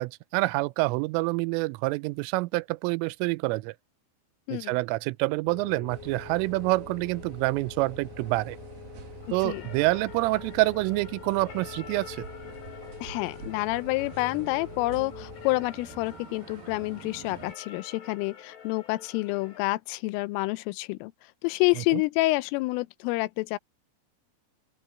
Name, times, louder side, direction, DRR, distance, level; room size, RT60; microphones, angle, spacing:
voice 1, 0.0-3.7 4.5-8.6 9.3-12.3 21.9-22.0, right 22 dB, 85° right, 3.1 m, -27 dB
sound 1, 5.4-15.7, left 10 dB, 40° left, 6.3 m, -46 dB
sound 2, 5.9-17.5, right 5 dB, 50° right, 3.8 m, -46 dB
sound 3, 9.2-19.7, left 6 dB, 70° left, 7.8 m, -48 dB
voice 2, 13.0-21.1 21.4-23.6, left 22 dB, 90° left, 3.3 m, -28 dB
open air
omnidirectional pair, 5.7 m